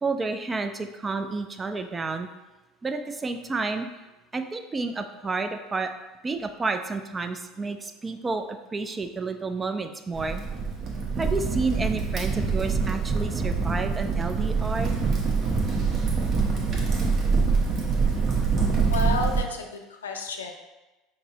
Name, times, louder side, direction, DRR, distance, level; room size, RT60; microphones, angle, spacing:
voice 1, 0.0-2.3 2.8-3.9 4.3-5.9 6.2-10.4 11.2-15.0 18.0-18.1, right 3 dB, 20° right, 7 dB, 0.4 m, -30 dB
Crackle, 10.2-19.4, right 4 dB, 40° right, 0.8 m, -25 dB
voice 2, 18.9-20.5, left 4 dB, 80° left, 3 dB, 0.4 m, -31 dB
5.2 x 2.0 x 3.9 m, 1.1 s
figure-of-eight pair, 70°, 0 cm